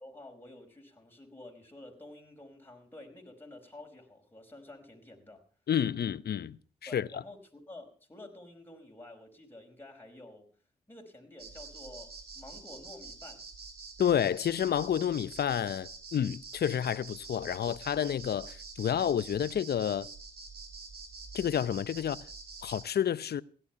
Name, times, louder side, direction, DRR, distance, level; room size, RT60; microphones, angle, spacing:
voice 1, 0.0-5.4 6.9-10.5 10.9-13.4, left 2 dB, 10° left, 5.0 m, -50 dB
voice 2, 5.7-6.6 6.8-7.2 14.0-20.1 21.3-22.2 22.6-23.4, left 9 dB, 65° left, 0.7 m, -30 dB
sound 1, 11.4-22.8, right 4 dB, 65° right, 3.0 m, -47 dB
16.5 x 11.5 x 5.8 m
supercardioid pair, 50°, 18 cm